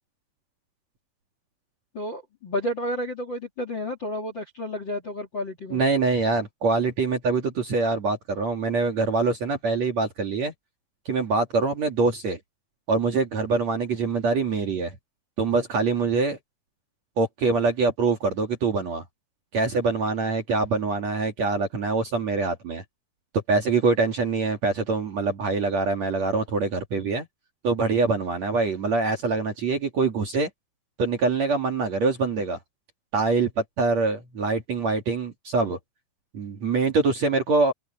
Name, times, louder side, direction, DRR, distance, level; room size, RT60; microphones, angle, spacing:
voice 1, 1.9-5.8, equal, 35° left, 2.0 m, -31 dB
voice 2, 5.7-10.5 11.1-12.4 12.9-14.9 15.4-16.4 17.2-19.0 19.5-22.8 23.5-27.3 27.6-30.5 31.0-32.6 33.1-35.8 36.3-37.7, right 3 dB, 45° right, 2.7 m, -24 dB
open air
omnidirectional pair, 5.4 m